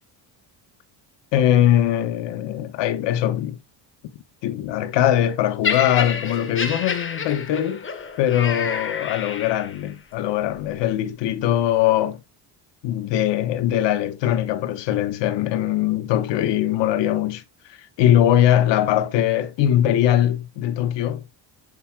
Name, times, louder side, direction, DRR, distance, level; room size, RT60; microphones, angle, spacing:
voice 1, 1.3-3.6 4.4-7.9 8.2-12.2 12.8-17.4 17.7-21.2, left 11 dB, 85° left, 1.2 m, -21 dB
Laughter, 5.6-9.9 10.7-10.9, left 5 dB, 30° left, 1.4 m, -29 dB
8.1 x 6.8 x 2.2 m
cardioid pair, 125°, 42 cm